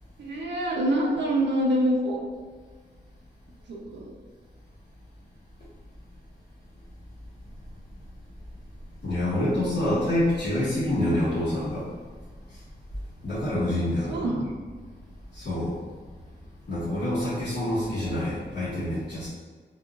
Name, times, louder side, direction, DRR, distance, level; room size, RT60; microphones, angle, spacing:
voice 1, 0.2-2.2 3.7-4.1 14.1-14.5, right 1 dB, 80° right, -2 dB, 0.6 m, -25 dB
voice 2, 9.0-11.9 13.2-14.3 15.3-15.8 16.7-19.3, left 1 dB, 65° left, -12 dB, 1.3 m, -26 dB
3.9 x 2.3 x 2.3 m, 1.5 s
wide cardioid pair, 100°, 18 cm